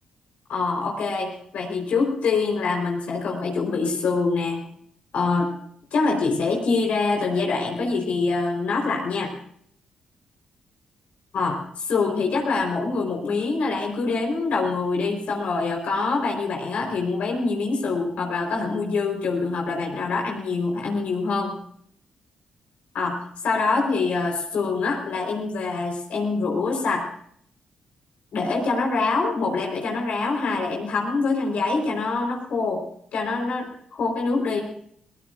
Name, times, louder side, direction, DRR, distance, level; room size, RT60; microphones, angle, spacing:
voice 1, 0.5-4.6 5.1-5.5 5.9-9.3 11.3-21.5 22.9-23.2 23.4-27.0 28.3-32.8 33.1-34.6, left 4 dB, 65° left, 0 dB, 4.4 m, -25 dB
21.5 x 19.0 x 2.6 m, 0.65 s
hypercardioid pair, 45°, 3 cm